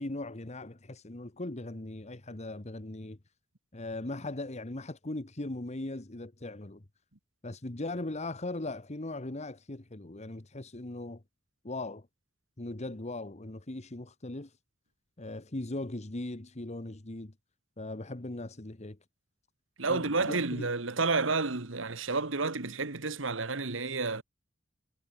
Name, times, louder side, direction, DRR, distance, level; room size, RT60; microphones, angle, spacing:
voice 1, 0.0-3.2 3.7-6.8 7.4-11.2 11.6-12.1 12.6-14.5 15.2-17.3 17.8-19.0 19.9-20.7, left 2 dB, 35° left, 1.3 m, -39 dB
voice 2, 19.8-24.2, right 3 dB, 85° right, 1.8 m, -30 dB
head